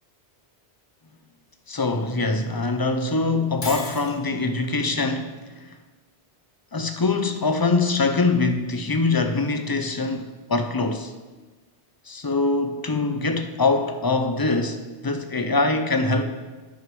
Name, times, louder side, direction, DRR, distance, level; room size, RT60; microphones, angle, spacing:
voice 1, 1.7-5.4 6.7-11.1 12.1-16.2, left 3 dB, 30° left, 0.4 m, -23 dB
Shatter, 3.6-4.2, left 3 dB, 50° left, 1.4 m, -33 dB
10.0 x 6.1 x 5.3 m
omnidirectional pair, 1.2 m